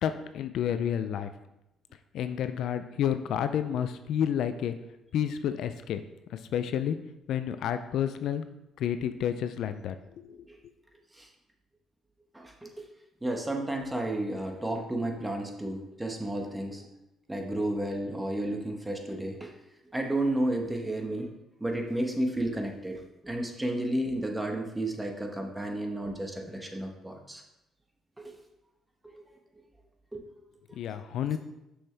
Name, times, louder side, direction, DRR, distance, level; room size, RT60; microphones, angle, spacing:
voice 1, 0.0-1.3 2.1-4.8 5.1-6.0 6.3-7.0 7.3-8.4 8.8-10.0 10.2-10.4 30.7-31.4, left 9 dB, 70° left, 10 dB, 0.4 m, -30 dB
voice 2, 12.3-12.9 13.2-16.8 17.3-19.5 19.9-21.3 21.6-27.4 28.2-28.3 29.0-29.2 30.1-30.2, right 1 dB, 10° right, 2 dB, 1.3 m, -32 dB
6.3 x 6.2 x 3.3 m, 0.90 s
supercardioid pair, 70°, 0 cm